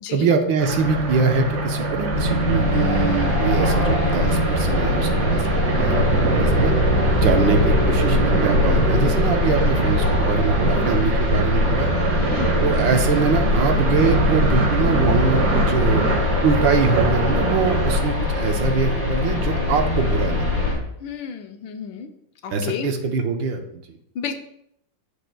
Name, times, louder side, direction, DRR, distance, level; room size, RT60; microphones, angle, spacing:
voice 1, 0.1-6.7 7.2-11.9 12.6-16.0 16.4-20.5 22.5-24.0, right 5 dB, 80° right, 5 dB, 1.6 m, -23 dB
sound 1, 0.6-18.0, right 3 dB, 60° right, 1.8 m, -24 dB
sound 2, 2.1-20.7, left 2 dB, 20° left, 2.5 m, -22 dB
voice 2, 12.3-12.6 21.0-22.1 22.4-22.9 24.1-24.3, left 7 dB, 80° left, 6 dB, 1.5 m, -31 dB
14.0 x 5.0 x 2.3 m, 0.75 s
omnidirectional pair, 2.1 m